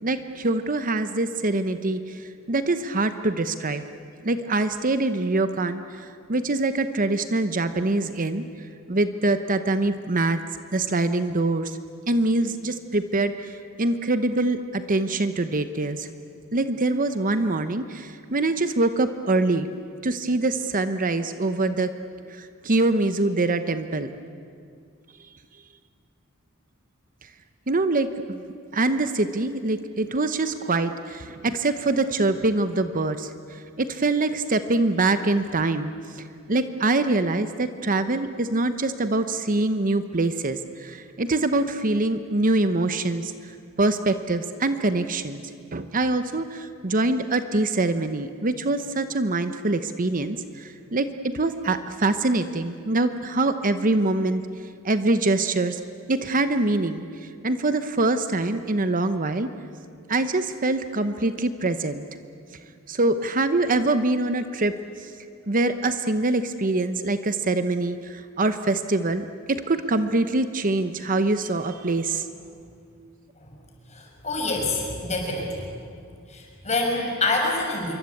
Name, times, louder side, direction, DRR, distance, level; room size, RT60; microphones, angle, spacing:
voice 1, 0.0-2.2 2.5-3.9 4.2-8.5 8.9-10.4 10.7-11.8 12.1-13.5 13.8-16.1 16.5-19.7 20.0-21.9 22.3-24.1 27.7-28.4 28.7-33.3 33.8-43.3 43.8-45.4 45.7-54.4 54.8-55.8 56.1-57.0 57.4-59.5 60.1-62.0 62.9-64.7 65.5-72.2, right 2 dB, 40° right, 10 dB, 0.9 m, -24 dB
voice 2, 73.9-75.7 76.3-77.9, left 2 dB, 35° left, 0 dB, 6.3 m, -26 dB
27.0 x 23.5 x 8.5 m, 2.3 s
head